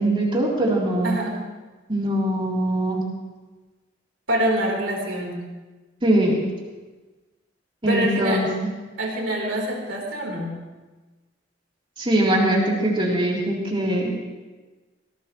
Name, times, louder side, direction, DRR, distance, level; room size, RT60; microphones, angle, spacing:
voice 1, 0.0-1.2 1.9-3.0 6.0-6.4 7.8-8.5 12.0-14.2, right 1 dB, 25° right, -4 dB, 3.7 m, -22 dB
voice 2, 1.0-1.4 4.3-5.4 7.9-8.4 9.0-10.5, right 1 dB, 85° right, -1 dB, 4.1 m, -25 dB
19.5 x 18.0 x 3.3 m, 1.2 s
head